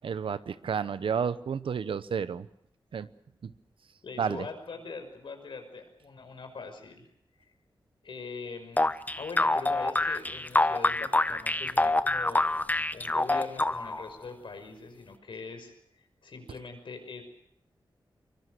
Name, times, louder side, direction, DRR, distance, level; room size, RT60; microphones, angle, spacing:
voice 1, 0.0-2.5 2.9-3.1 3.4-3.5 4.2-4.5, right 6 dB, 85° right, 14 dB, 1.0 m, -31 dB
voice 2, 4.0-7.1 8.0-12.4 12.9-15.7 16.2-17.3, left 4 dB, 75° left, 6 dB, 5.7 m, -42 dB
sound 1, 8.8-14.1, left 2 dB, 20° left, 1.0 m, -26 dB
24.5 x 22.0 x 6.7 m, 0.72 s
wide cardioid pair, 90°, 9 cm